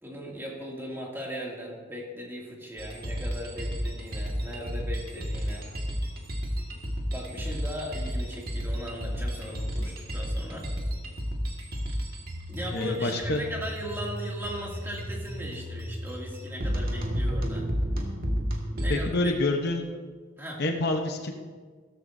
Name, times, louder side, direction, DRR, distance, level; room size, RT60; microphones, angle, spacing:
voice 1, 0.0-5.7 7.1-10.7 12.5-17.7 18.7-19.3 20.4-20.6, equal, 10° right, -3 dB, 2.4 m, -38 dB
sound 1, 2.8-19.0, equal, 50° right, 1.9 m, -32 dB
voice 2, 12.7-13.4 18.9-19.8 20.6-21.3, left 2 dB, 55° left, 3 dB, 0.9 m, -27 dB
15.5 x 13.5 x 2.7 m, 1.5 s
head